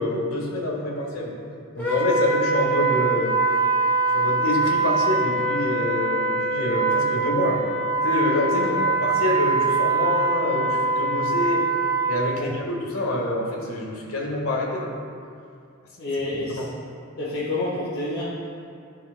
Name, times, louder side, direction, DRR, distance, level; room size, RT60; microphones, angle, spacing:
voice 1, 0.0-1.3 1.7-3.3 4.1-7.6 8.0-11.6 12.1-14.9 16.3-16.7, left 1 dB, 85° left, -2 dB, 1.5 m, -26 dB
Wind instrument woodwind instrument, 1.8-12.2, right 3 dB, 10° left, 1.3 m, -23 dB
voice 2, 16.0-16.6 17.2-18.2, left 2 dB, 50° left, -8 dB, 1.3 m, -28 dB
11.5 x 6.8 x 2.2 m, 2.4 s
head